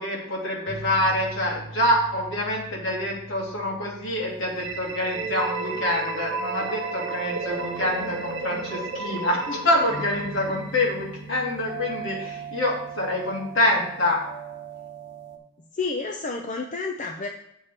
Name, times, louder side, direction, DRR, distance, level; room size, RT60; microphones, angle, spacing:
voice 1, 0.0-14.2, left 1 dB, 65° left, -2 dB, 2.3 m, -26 dB
sound 1, 0.7-15.4, right 5 dB, 25° right, 1.1 m, -39 dB
sound 2, 4.5-11.3, right 2 dB, 60° right, 1.1 m, -34 dB
voice 2, 15.7-17.3, left 4 dB, 35° left, 3 dB, 0.5 m, -30 dB
7.2 x 4.4 x 6.6 m, 0.79 s
head